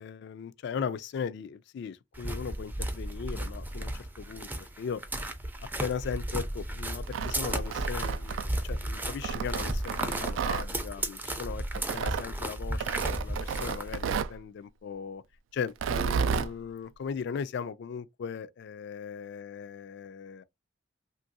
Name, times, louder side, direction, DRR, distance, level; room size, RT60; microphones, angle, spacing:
voice 1, 0.0-5.0 5.8-11.6 11.9-15.2 15.5-20.4, left 6 dB, 65° left, 0.3 m, -38 dB
sound 1, 2.1-14.0, right 1 dB, 10° right, 0.4 m, -34 dB
Tearing, 6.9-8.7 9.2-10.7 11.7-12.3 12.8-14.4 15.7-16.5, right 6 dB, 90° right, 0.3 m, -32 dB
3.0 x 2.5 x 2.6 m
head